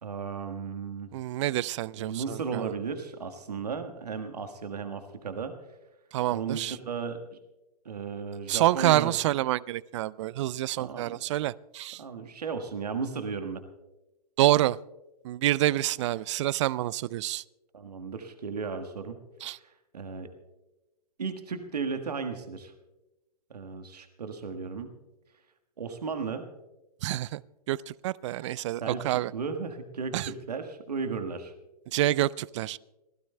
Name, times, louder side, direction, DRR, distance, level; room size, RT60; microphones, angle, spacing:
voice 1, 0.0-1.1 2.0-5.6 6.3-7.2 7.8-9.1 10.8-11.4 12.0-13.6 17.7-19.2 19.4-20.3 21.2-22.7 23.5-24.9 25.8-26.5 28.2-28.5 28.8-31.5, right 5 dB, 80° right, 8 dB, 1.4 m, -35 dB
voice 2, 1.1-2.7 6.1-6.8 8.5-12.0 14.4-14.8 15.2-17.4 19.4-19.6 27.0-27.4 27.7-29.3 30.1-30.3 31.9-32.8, right 15 dB, 50° right, 23 dB, 0.4 m, -27 dB
26.5 x 16.0 x 2.2 m, 1.0 s
hypercardioid pair, 115°, 20 cm